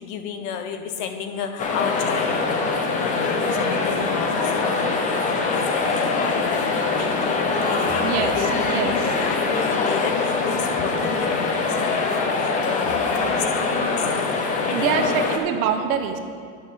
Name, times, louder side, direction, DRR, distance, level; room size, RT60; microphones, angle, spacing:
voice 1, 0.0-2.6 2.9-15.2, left 6 dB, 65° left, 7 dB, 1.0 m, -32 dB
sound 1, 1.6-15.4, left 4 dB, 20° left, 0.5 m, -23 dB
voice 2, 8.0-9.1 14.7-16.2, right 7 dB, 85° right, 6 dB, 1.2 m, -25 dB
9.7 x 6.1 x 6.9 m, 2.2 s
cardioid pair, 175°, 41 cm